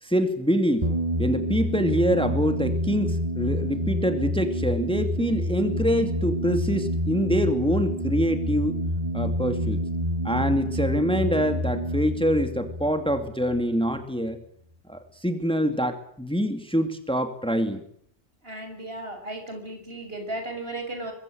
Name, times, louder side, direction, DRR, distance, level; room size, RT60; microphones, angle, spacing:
voice 1, 0.0-0.9 1.2-8.8 9.1-9.8 10.2-14.4 14.9-17.8, equal, 5° left, 7 dB, 2.6 m, -25 dB
sound 1, 0.8-14.0, equal, 35° right, 2.2 m, -28 dB
voice 2, 18.4-21.1, right 2 dB, 60° right, 5 dB, 7.0 m, -35 dB
25.0 x 22.0 x 7.9 m, 0.67 s
omnidirectional pair, 1.1 m